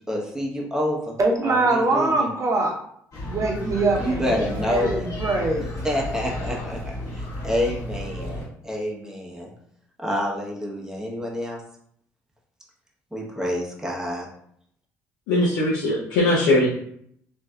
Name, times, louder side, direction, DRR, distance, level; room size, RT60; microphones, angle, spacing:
voice 1, 0.1-1.2 1.4-2.3 4.0-5.1 5.8-9.5 10.0-11.6 13.1-14.3, equal, 5° right, -2 dB, 1.0 m, -28 dB
voice 2, 1.2-2.7 3.2-5.7, right 2 dB, 40° right, 1 dB, 0.8 m, -23 dB
sound 1, 3.1-8.5, left 1 dB, 50° left, 1.2 m, -32 dB
voice 3, 15.3-16.7, left 2 dB, 75° left, -6 dB, 0.6 m, -20 dB
3.1 x 2.7 x 2.3 m, 0.67 s
hypercardioid pair, 50°, 8 cm